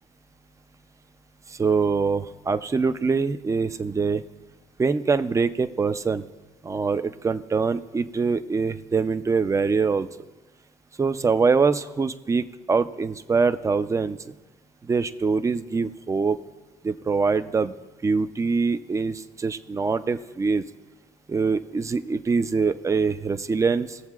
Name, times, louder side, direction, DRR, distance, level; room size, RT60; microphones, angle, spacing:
voice 1, 1.5-4.2 4.8-6.2 6.6-10.1 11.0-14.3 14.8-16.4 16.8-17.7 18.0-20.6 21.3-24.0, right 4 dB, 20° right, 11 dB, 0.5 m, -24 dB
21.0 x 7.2 x 2.4 m, 1.2 s
cardioid pair, 90°, 14 cm